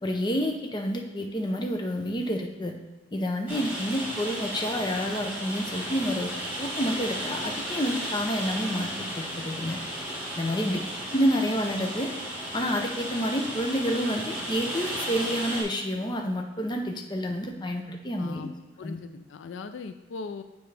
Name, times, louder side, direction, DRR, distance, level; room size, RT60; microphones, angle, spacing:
voice 1, 0.0-2.7 3.1-6.3 6.6-9.8 10.4-10.8 11.1-12.1 12.5-18.5 18.8-19.0, equal, 25° left, 3 dB, 0.6 m, -29 dB
Rain, 3.5-15.6, equal, 10° right, 1.5 m, -34 dB
voice 2, 10.5-10.8 18.2-18.5 18.8-20.4, left 4 dB, 80° left, 9 dB, 0.4 m, -39 dB
7.8 x 5.3 x 3.4 m, 1.1 s
head